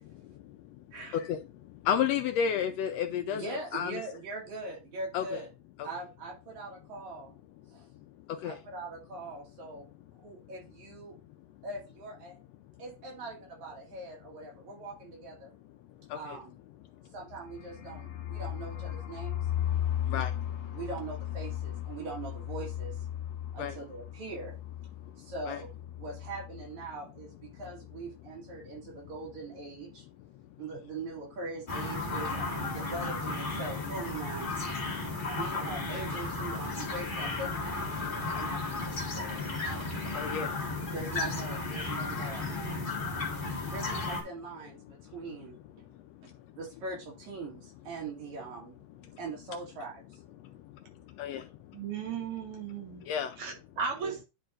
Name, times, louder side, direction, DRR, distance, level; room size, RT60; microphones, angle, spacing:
voice 1, 0.9-1.3 3.3-5.5 5.8-7.4 7.7-7.9 8.4-9.9 10.2-11.2 11.6-12.4 12.8-15.5 16.1-16.6 17.1-19.5 20.7-23.0 23.5-24.6 25.2-25.7 26.0-30.1 30.6-34.5 35.3-38.0 38.3-39.5 40.5-40.6 40.9-42.9 43.7-45.9 46.2-50.2 53.5-53.6 54.0-54.1, right 3 dB, 75° right, 3.6 m, -42 dB
voice 2, 1.8-3.4 3.7-3.9 5.1-5.2 8.4-8.5 16.1-16.2 20.1-20.3 23.6-23.7 25.5-25.6 40.1-40.5 51.2-51.4 53.1-53.3, left 8 dB, 80° left, 1.6 m, -30 dB
sound 1, 17.2-26.9 27.2-27.3 27.6-28.0, left 11 dB, 60° left, 1.5 m, -36 dB
sound 2, 31.7-44.2, left 3 dB, 30° left, 1.0 m, -34 dB
voice 3, 51.7-53.1 53.4-54.2, right 6 dB, 55° right, 1.8 m, -36 dB
10.5 x 4.5 x 2.5 m
omnidirectional pair, 3.3 m